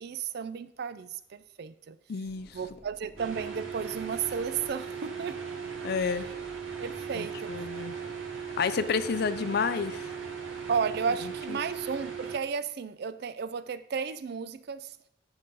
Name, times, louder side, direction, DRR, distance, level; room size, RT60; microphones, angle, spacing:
voice 1, 0.0-2.0 2.5-5.4 6.0-6.1 6.8-7.7 10.7-15.0, right 6 dB, 55° right, 14 dB, 0.4 m, -33 dB
voice 2, 2.1-2.6 5.8-6.3 7.1-8.0 8.6-10.2 11.2-11.6, left 5 dB, 50° left, 13 dB, 0.4 m, -30 dB
sound 1, 2.2-12.7, equal, ahead, 1.2 m, -56 dB
sound 2, 3.2-12.4, right 6 dB, 80° right, 1.1 m, -38 dB
9.6 x 5.3 x 3.8 m, 0.74 s
head